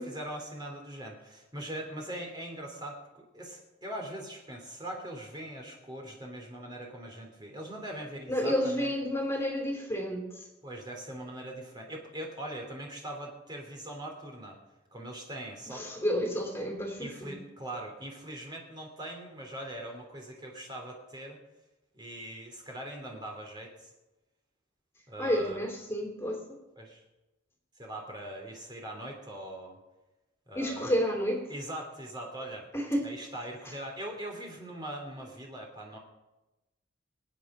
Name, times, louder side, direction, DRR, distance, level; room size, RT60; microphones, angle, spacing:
voice 1, 0.0-8.9 10.6-14.6 14.9-15.9 17.0-21.4 21.9-23.9 25.1-25.6 26.8-27.0 27.8-29.8 30.5-31.0 31.5-32.7 33.0-36.0, right 1 dB, 20° right, 1 dB, 2.9 m, -41 dB
voice 2, 8.3-10.5 15.7-17.4 25.2-26.6 30.5-31.4 32.7-33.1, equal, 15° left, 2 dB, 3.0 m, -30 dB
24.0 x 9.1 x 6.0 m, 1.0 s
head